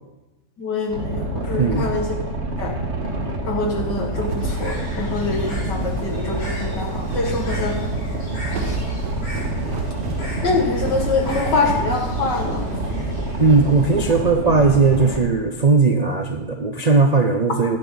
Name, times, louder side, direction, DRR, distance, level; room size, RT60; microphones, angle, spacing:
voice 1, 0.6-2.1 2.6-2.7 3.4-7.8 8.6-8.8 10.4-12.7, left 3 dB, 90° left, 1 dB, 2.7 m, -25 dB
Boat Water vehicle, 0.9-15.2, right 2 dB, 40° right, 2.0 m, -27 dB
voice 2, 1.6-1.9 7.5-7.6 13.4-17.8, right 4 dB, 60° right, 4 dB, 0.4 m, -18 dB
sound 1, 3.8-12.7, right 3 dB, 80° right, 2.0 m, -33 dB
Bird, 4.4-14.2, equal, 60° left, 3.8 m, -35 dB
16.0 x 11.5 x 4.0 m, 1.1 s
omnidirectional pair, 1.8 m